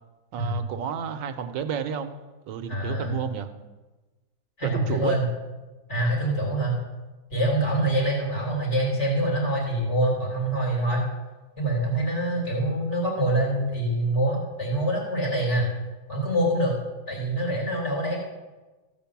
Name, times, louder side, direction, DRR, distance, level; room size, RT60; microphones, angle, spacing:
voice 1, 0.3-2.2 2.5-3.5 4.6-5.2, right 7 dB, 75° right, 8 dB, 1.4 m, -31 dB
voice 2, 2.7-3.1 4.6-5.2 5.9-6.8 7.3-11.1 11.6-15.7 16.1-16.8 17.1-18.2, right 1 dB, 35° left, -3 dB, 3.7 m, -25 dB
15.0 x 5.3 x 7.1 m, 1.2 s
omnidirectional pair, 2.1 m